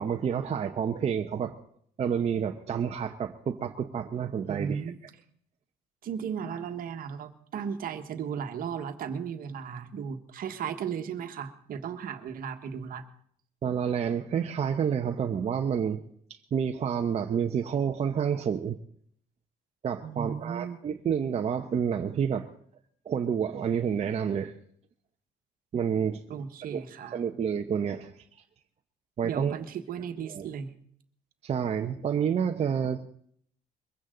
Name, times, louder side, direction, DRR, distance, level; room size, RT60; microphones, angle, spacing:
voice 1, 0.0-1.6 2.0-4.9 13.6-16.0 16.3-18.8 19.8-22.5 23.1-24.6 25.7-26.2 26.6-26.8 27.1-28.1 29.2-29.5 30.2-30.5 31.4-33.1, right 7 dB, 40° right, 0.9 m, -29 dB
voice 2, 4.4-5.0 6.0-13.0 20.0-20.8 26.3-27.2 29.2-30.7, right 7 dB, 60° right, 1.5 m, -35 dB
22.5 x 15.5 x 3.9 m
cardioid pair, 110°, 17 cm